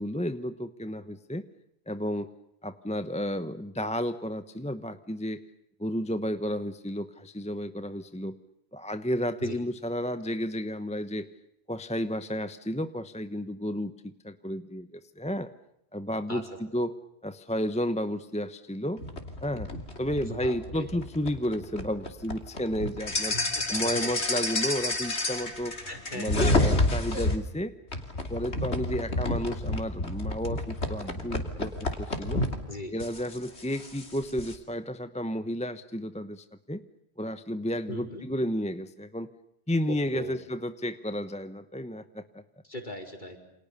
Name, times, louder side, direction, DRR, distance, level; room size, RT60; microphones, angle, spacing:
voice 1, 0.0-1.5 1.9-2.3 2.6-5.4 5.8-8.4 8.7-11.3 11.7-15.5 15.9-16.5 16.7-16.9 17.2-19.0 19.4-19.7 20.0-23.4 23.7-25.8 26.1-27.7 28.3-31.7 32.0-32.4 32.9-36.8 37.2-39.3 39.7-42.4, equal, 5° left, 11 dB, 1.0 m, -32 dB
sound 1, 19.0-27.4 27.9-32.6 33.0-34.5, left 2 dB, 90° left, 3.4 m, -30 dB
voice 2, 20.2-20.9 23.3-24.0 25.9-26.5 32.7-32.9 37.9-38.3 39.9-40.4 42.6-43.4, left 1 dB, 45° left, 4 dB, 5.1 m, -39 dB
29.5 x 27.5 x 6.8 m, 0.80 s
omnidirectional pair, 1.1 m